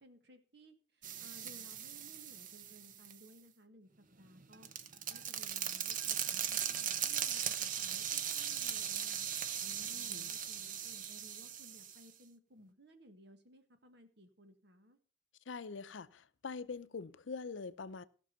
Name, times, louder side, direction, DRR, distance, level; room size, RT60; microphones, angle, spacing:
voice 1, 0.0-4.7 5.1-9.3 9.8-15.0, equal, 60° right, 1.6 m, -60 dB
sound 1, 1.0-3.2 4.2-12.0, right 9 dB, 45° right, 0.7 m, -39 dB
voice 2, 9.6-10.4 15.5-18.0, left 4 dB, 80° left, 0.6 m, -44 dB
16.0 x 6.1 x 5.7 m
head